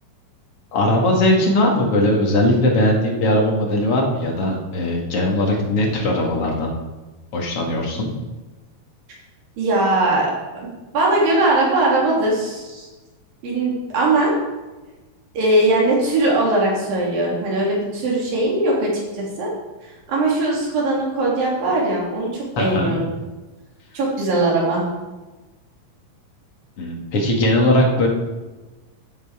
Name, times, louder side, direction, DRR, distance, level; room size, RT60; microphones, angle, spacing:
voice 1, 0.7-6.7 7.3-8.1 22.6-23.0 26.8-28.1, left 1 dB, 45° left, -1 dB, 2.8 m, -19 dB
voice 2, 9.6-10.3 10.5-10.7 10.9-12.9 13.4-14.3 15.3-19.5 20.1-23.1 23.9-24.9, right 2 dB, 90° right, -4 dB, 4.8 m, -20 dB
13.0 x 8.5 x 5.0 m, 1.2 s
omnidirectional pair, 3.9 m